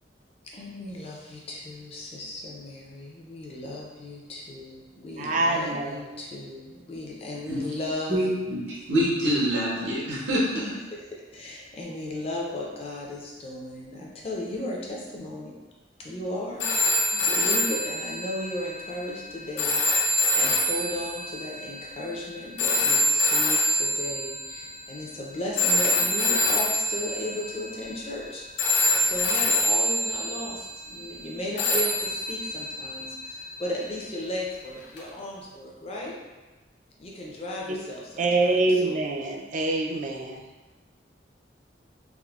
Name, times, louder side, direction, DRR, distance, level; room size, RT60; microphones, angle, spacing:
voice 1, 0.4-8.2 10.9-11.0 11.3-15.5 16.0-16.7 17.1-28.4 29.0-36.2 37.0-39.0, left 1 dB, 35° left, -3 dB, 0.5 m, -35 dB
voice 2, 5.2-6.0 37.7-37.8 38.2-40.4, right 2 dB, 45° right, 2 dB, 0.3 m, -25 dB
voice 3, 8.1-10.6, equal, 80° right, -6 dB, 0.8 m, -25 dB
sound 1, 16.6-24.8 25.6-28.3 28.6-30.7 31.6-33.8 35.0-35.1, left 1 dB, 80° left, 0.5 m, -26 dB
3.6 x 2.0 x 2.3 m, 1.2 s
head